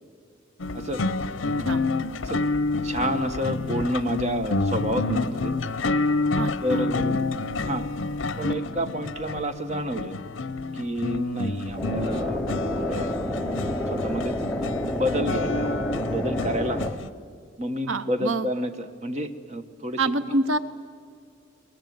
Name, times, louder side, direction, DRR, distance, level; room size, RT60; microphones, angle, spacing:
sound 1, 0.6-17.1, left 3 dB, 65° left, 0.8 m, -28 dB
voice 1, 2.8-5.5 6.6-7.2 7.6-7.9 8.4-10.2 10.7-12.4 12.7-13.1 13.9-14.3 14.8-17.0 17.6-20.0, equal, 35° right, 8 dB, 1.2 m, -29 dB
voice 2, 6.4-6.9 17.9-18.5 20.0-20.6, right 2 dB, 80° right, 12 dB, 0.8 m, -26 dB
sound 2, 11.8-16.9, left 1 dB, 5° left, 0.8 m, -29 dB
21.5 x 21.0 x 9.3 m, 2.2 s
head